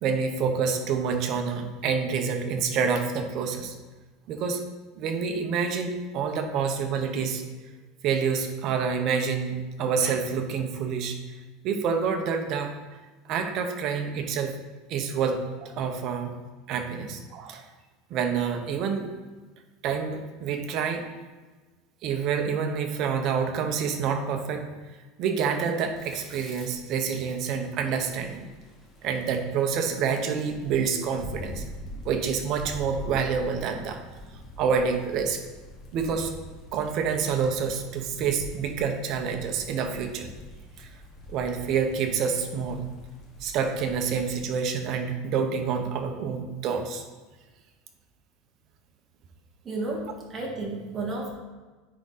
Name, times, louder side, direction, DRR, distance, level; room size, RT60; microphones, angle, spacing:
voice 1, 0.0-3.7 4.3-4.6 5.0-7.4 8.0-11.2 11.6-12.7 13.3-14.5 14.9-16.3 16.7-17.6 18.1-19.1 19.8-21.0 22.0-24.6 25.2-28.5 29.0-31.6 32.0-34.0 34.6-35.4 35.9-36.3 36.7-40.3 40.8-40.9 41.3-42.8 43.4-47.0, right 6 dB, 45° right, 5 dB, 0.9 m, -27 dB
Chewing mastication, 26.0-30.4, right 1 dB, 5° left, 1.8 m, -51 dB
sound 1, 28.0-44.4, equal, 30° left, 1.1 m, -44 dB
voice 2, 49.6-51.3, right 2 dB, 20° right, -2 dB, 1.6 m, -32 dB
9.6 x 3.7 x 4.0 m, 1.3 s
supercardioid pair, 155°, 0 cm